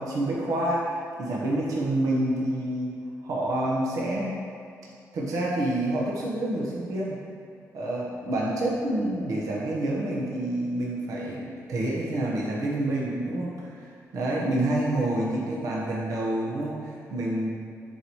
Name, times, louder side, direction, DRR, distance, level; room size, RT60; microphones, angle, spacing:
voice 1, 0.0-2.9 3.2-4.4 5.1-7.2 7.7-17.5, right 1 dB, 70° right, -4 dB, 1.2 m, -28 dB
10.5 x 4.7 x 3.1 m, 2.3 s
cardioid pair, 115°, 6 cm